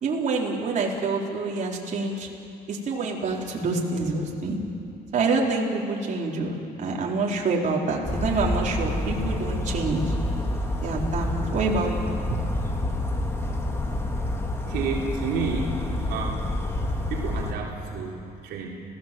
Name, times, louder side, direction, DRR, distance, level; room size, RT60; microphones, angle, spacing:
voice 1, 0.0-2.3 2.7-4.6 5.1-10.1 10.8-12.4, right 3 dB, 45° right, -2 dB, 4.0 m, -27 dB
Bird vocalization bird call bird song, 8.0-17.5, left 1 dB, 15° left, 2.7 m, -28 dB
voice 2, 14.7-16.4 17.1-18.7, right 5 dB, 75° right, -2 dB, 3.3 m, -30 dB
30.0 x 17.5 x 7.8 m, 2.7 s
cardioid pair, 110°, 17 cm